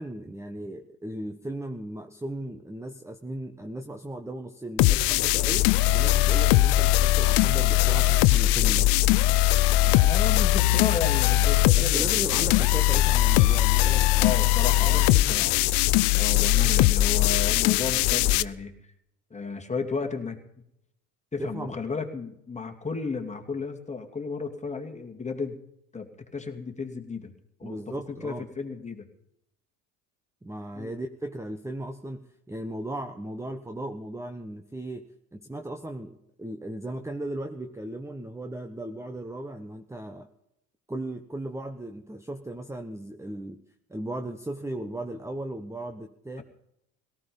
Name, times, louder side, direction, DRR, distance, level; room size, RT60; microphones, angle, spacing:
voice 1, 0.0-8.9 11.8-14.3 14.8-15.5 21.4-21.7 27.6-28.4 30.4-40.3 40.9-43.6 43.9-46.4, right 1 dB, 5° right, 6 dB, 1.2 m, -36 dB
sound 1, 4.8-18.4, left 16 dB, 65° left, 0.7 m, -21 dB
voice 2, 9.8-12.5 14.2-15.6 16.2-18.7 19.3-20.4 21.3-25.6 25.9-27.3 27.6-27.8 28.1-29.0 30.7-30.9, left 5 dB, 15° left, 3 dB, 2.6 m, -33 dB
17.5 x 15.0 x 5.4 m, 0.79 s
hypercardioid pair, 80°, 44 cm